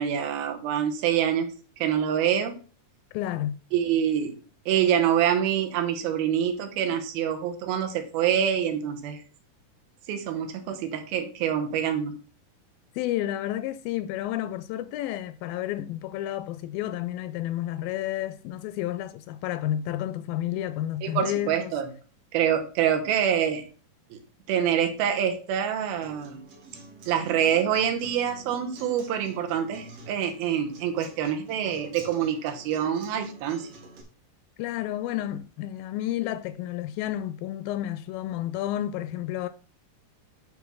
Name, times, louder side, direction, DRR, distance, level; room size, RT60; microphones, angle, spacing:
voice 1, 0.0-1.5 1.8-2.6 3.7-4.4 4.7-9.2 10.1-12.1 21.0-21.9 22.3-23.6 24.1-24.2 24.5-26.4 27.1-33.7, right 9 dB, 75° right, 2.9 m, -26 dB
voice 2, 3.1-3.6 13.0-21.7 34.6-39.5, left 13 dB, 80° left, 2.1 m, -31 dB
Acoustic guitar, 26.0-34.0, right 2 dB, 50° right, 2.4 m, -48 dB
9.4 x 3.6 x 6.1 m
omnidirectional pair, 4.4 m